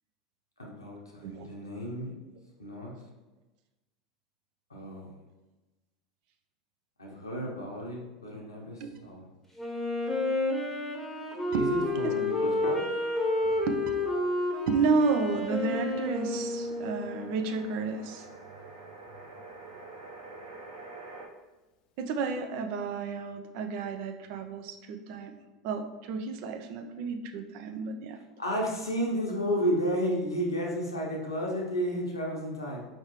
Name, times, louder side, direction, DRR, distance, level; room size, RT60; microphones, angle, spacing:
voice 1, 0.6-2.1 2.6-2.9 4.7-5.1 7.0-9.3 11.5-12.9 28.4-32.9, equal, 85° left, -2 dB, 1.0 m, -32 dB
Wind instrument woodwind instrument, 9.6-17.3, left 2 dB, 10° left, 0.9 m, -30 dB
Piano, 12.6-18.9, left 8 dB, 45° left, 0.4 m, -47 dB
voice 2, 13.4-13.8 14.7-18.3 22.0-25.3 25.6-28.2, right 4 dB, 50° right, 6 dB, 0.5 m, -31 dB
sound 1, 14.6-21.3, right 3 dB, 75° right, 0.9 m, -48 dB
4.6 x 3.2 x 3.0 m, 1.1 s
figure-of-eight pair, 80°, 2 cm